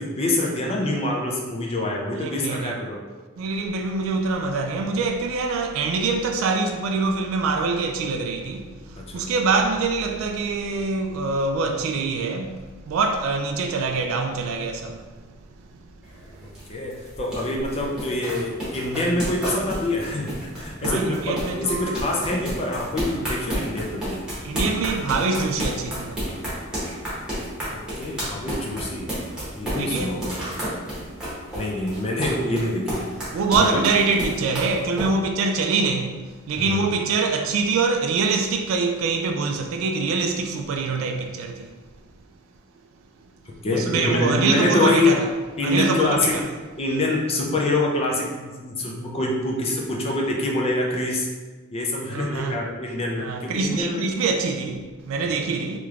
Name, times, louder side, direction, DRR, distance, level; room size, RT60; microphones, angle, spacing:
voice 1, 0.0-3.0 9.0-9.3 16.7-24.1 27.7-29.1 29.5-30.3 31.5-33.1 33.5-33.8 36.6-36.8 43.5-45.1 45.6-46.4 46.8-51.3 51.7-54.0 55.2-55.4, left 2 dB, 30° left, 0.4 m, -25 dB
voice 2, 2.2-2.7 3.4-15.1 15.8-15.9 16.4-16.5 20.8-21.9 23.2-23.3 24.4-26.3 29.7-30.2 31.0-31.2 33.3-41.7 43.2-43.3 43.7-45.3 45.6-46.5 52.1-52.6 53.2-55.8, right 4 dB, 75° right, 0.3 m, -25 dB
sound 1, 16.0-35.1, equal, 5° right, 1.1 m, -31 dB
3.3 x 2.9 x 2.4 m
head